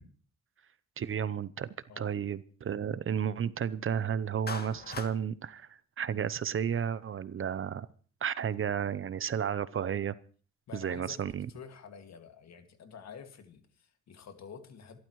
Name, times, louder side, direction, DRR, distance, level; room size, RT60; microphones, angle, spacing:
voice 1, 1.0-1.7 2.0-7.9 8.2-10.1 10.7-11.5, right 8 dB, 45° right, 16 dB, 0.8 m, -32 dB
Clapping, 4.5-5.2, left 4 dB, 30° left, 1.8 m, -39 dB
voice 2, 10.7-11.2 11.5-15.0, left 6 dB, 60° left, 7 dB, 2.2 m, -49 dB
27.0 x 13.0 x 3.2 m, 0.42 s
cardioid pair, 90°, 30 cm